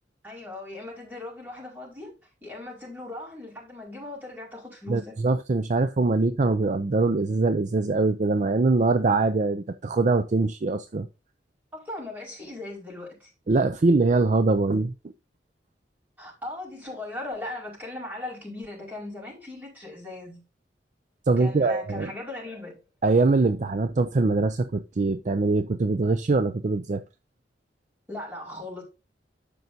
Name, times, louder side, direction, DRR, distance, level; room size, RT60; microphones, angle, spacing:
voice 1, 0.2-2.1 2.4-5.1 11.7-13.3 16.2-20.4 21.4-22.8 28.1-28.8, left 2 dB, 10° right, 4.9 m, -38 dB
voice 2, 4.9-11.1 13.5-14.9 21.3-22.1 23.0-27.0, right 3 dB, 45° right, 0.5 m, -23 dB
12.5 x 5.3 x 2.7 m
head